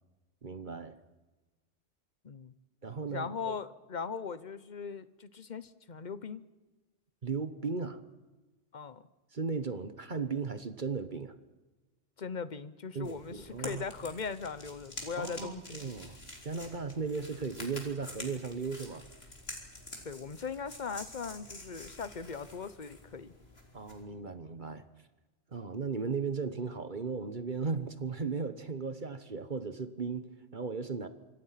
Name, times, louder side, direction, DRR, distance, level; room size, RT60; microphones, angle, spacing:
voice 1, 0.4-1.0 2.8-3.5 7.2-8.0 9.3-11.4 12.9-13.8 15.2-16.2 16.4-19.1 23.7-24.9 25.5-31.1, right 5 dB, 45° right, 11 dB, 1.4 m, -36 dB
voice 2, 3.1-6.4 8.7-9.0 12.2-15.6 20.0-23.3, left 5 dB, 40° left, 14 dB, 1.1 m, -39 dB
sound 1, 13.0-24.0, left 1 dB, 60° left, 4.3 m, -48 dB
26.5 x 25.0 x 5.9 m, 1.2 s
omnidirectional pair, 1.2 m